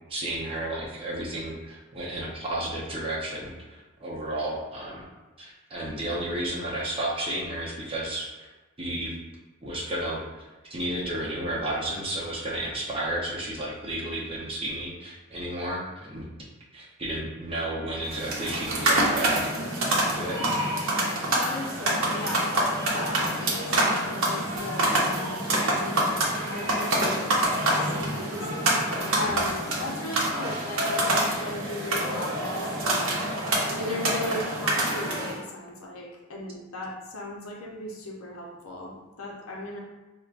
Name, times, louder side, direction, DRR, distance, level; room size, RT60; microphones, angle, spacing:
voice 1, 0.1-5.0 5.4-8.5 8.8-9.2 9.6-16.3 16.7-19.4 19.7-20.4 29.3-29.5, right 1 dB, 25° right, -5 dB, 0.6 m, -32 dB
sound 1, 18.1-35.4, right 1 dB, 65° right, 0.7 m, -26 dB
voice 2, 21.2-28.5 29.2-33.2 33.8-39.8, left 1 dB, 70° left, -1 dB, 0.6 m, -37 dB
4.7 x 2.1 x 2.4 m, 1.2 s
head